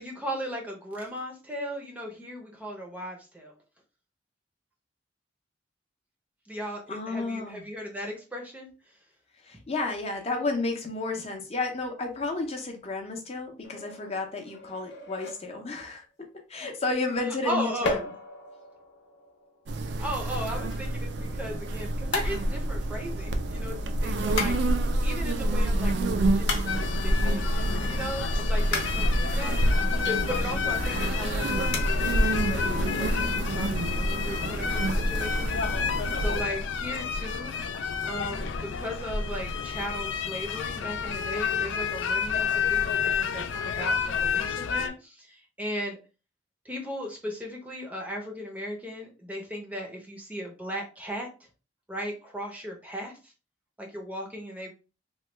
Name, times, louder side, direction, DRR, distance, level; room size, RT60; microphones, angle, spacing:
voice 1, 0.0-3.5 6.5-9.0 17.4-17.9 20.0-27.5 27.9-29.6 30.0-35.7 36.2-37.5 38.1-46.0 46.6-51.3 51.9-53.3 53.8-54.8, equal, 10° right, 0 dB, 0.6 m, -37 dB
voice 2, 6.9-7.6 9.4-18.0, left 3 dB, 35° left, 2 dB, 0.6 m, -32 dB
sound 1, 13.6-15.9 17.8-20.8 22.1-23.6 24.4-25.5 26.5-27.4 28.7-30.7 31.0-31.1 31.7-31.8, left 3 dB, 70° left, 0.7 m, -36 dB
sound 2, 19.7-36.4, right 1 dB, 65° right, 0.4 m, -28 dB
sound 3, 26.7-44.9, left 6 dB, 85° left, 0.4 m, -30 dB
3.0 x 2.2 x 3.2 m, 0.32 s
head